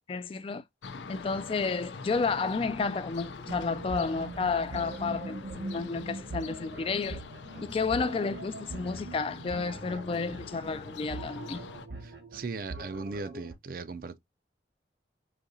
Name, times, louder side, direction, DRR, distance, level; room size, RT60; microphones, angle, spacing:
voice 1, 0.1-0.6 1.1-7.2 7.6-11.6, left 4 dB, 30° left, 0.3 m, -31 dB
sound 1, 0.8-11.9, left 4 dB, 85° left, 0.5 m, -45 dB
sound 2, 3.5-13.5, right 2 dB, 75° right, 1.2 m, -42 dB
voice 2, 12.0-14.2, right 4 dB, 50° right, 0.4 m, -38 dB
5.0 x 2.8 x 2.6 m
head